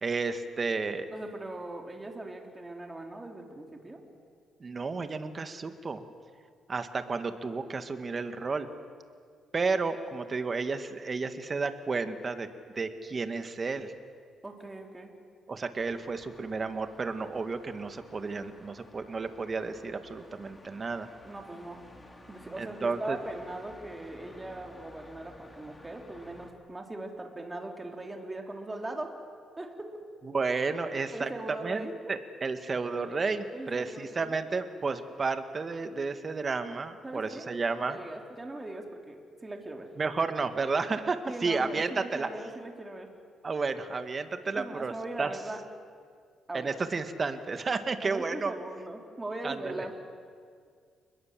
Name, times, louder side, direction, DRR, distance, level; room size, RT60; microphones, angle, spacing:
voice 1, 0.0-1.1 4.6-6.0 6.7-8.7 9.5-12.5 12.7-13.9 15.5-21.1 22.6-23.2 30.2-38.0 40.0-42.3 43.4-45.3 46.5-48.5 49.4-49.8, right 4 dB, 35° right, 8 dB, 1.9 m, -32 dB
voice 2, 1.1-4.0 14.4-15.1 21.2-21.8 22.3-29.1 29.6-30.0 31.1-32.1 33.5-34.3 37.0-39.9 41.2-43.1 44.5-45.6 46.5-46.7 48.0-49.9, right 2 dB, 20° right, 2 dB, 3.8 m, -40 dB
sound 1, 15.8-26.5, left 1 dB, 20° left, 3.4 m, -53 dB
29.5 x 21.0 x 7.7 m, 2.1 s
cardioid pair, 90°, 0 cm